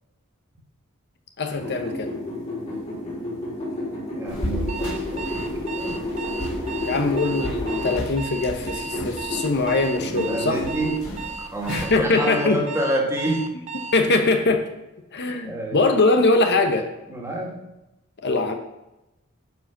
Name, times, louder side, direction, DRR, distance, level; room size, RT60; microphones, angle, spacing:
voice 1, 1.4-2.1 6.8-10.6 11.7-12.6 13.9-14.7 15.1-16.9 18.2-18.5, left 3 dB, 55° left, 5 dB, 1.0 m, -22 dB
sound 1, 1.5-8.0 8.4-10.9, left 1 dB, 35° left, 3.6 m, -31 dB
voice 2, 4.1-6.0 10.1-11.1 11.4-13.5 15.2-15.8 17.1-17.6, right 1 dB, 15° right, -1 dB, 2.0 m, -28 dB
sound 2, 4.3-11.8, left 1 dB, 85° left, 3.4 m, -35 dB
Alarm, 4.7-14.1, right 5 dB, 30° right, 0.6 m, -35 dB
10.5 x 5.1 x 5.9 m, 0.94 s
head